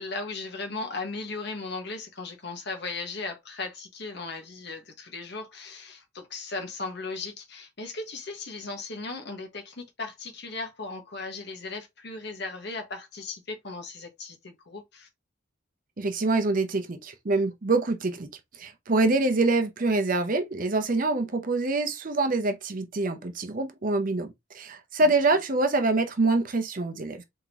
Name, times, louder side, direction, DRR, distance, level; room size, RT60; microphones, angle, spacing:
voice 1, 0.0-15.1 25.0-25.1, left 3 dB, 55° left, 1.1 m, -37 dB
voice 2, 16.0-18.3 18.6-27.2, right 3 dB, 40° right, 0.6 m, -25 dB
3.8 x 3.6 x 2.9 m
head